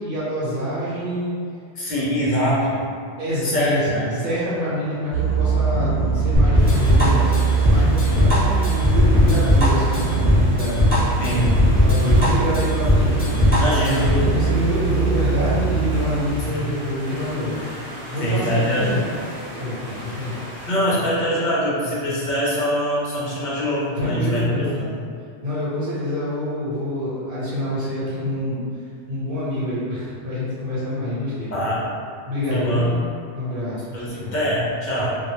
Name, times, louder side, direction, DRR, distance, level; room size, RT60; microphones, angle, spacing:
voice 1, 0.0-1.3 3.2-10.9 11.7-17.6 18.1-19.0 19.6-20.4 24.0-24.8 25.4-28.6 29.1-31.5 32.2-32.9 33.3-34.4, left 1 dB, 55° right, -10 dB, 1.0 m, -26 dB
voice 2, 1.8-2.9 3.4-4.0 11.2-11.6 13.6-14.1 16.4-16.7 18.2-19.0 20.6-24.9 31.5-31.9 32.5-32.9 33.9-35.2, equal, 50° left, -7 dB, 0.7 m, -23 dB
sound 1, 5.1-16.3, right 5 dB, 80° right, 0.9 m, -22 dB
sound 2, 6.3-14.3, left 1 dB, 10° left, 0.6 m, -18 dB
sound 3, 6.5-20.7, equal, 30° right, 0.7 m, -37 dB
2.3 x 2.0 x 2.9 m, 2.2 s
omnidirectional pair, 1.2 m